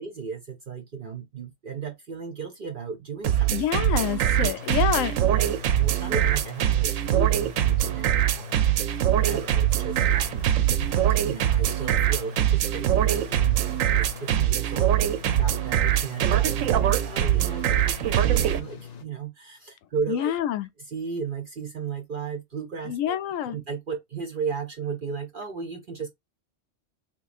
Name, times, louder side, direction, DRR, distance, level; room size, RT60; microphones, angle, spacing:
voice 1, 0.0-3.5 4.4-4.5 5.3-10.5 11.2-15.1 15.4-20.3 20.8-23.2 23.4-26.1, right 5 dB, 50° right, 0.7 m, -35 dB
sound 1, 3.2-18.6, right 11 dB, 90° right, 1.0 m, -23 dB
voice 2, 3.5-5.2 20.1-20.7 22.9-23.5, left 11 dB, 85° left, 1.0 m, -27 dB
sound 2, 4.6-19.0, left 7 dB, 50° left, 0.5 m, -42 dB
3.6 x 3.0 x 2.4 m
omnidirectional pair, 1.3 m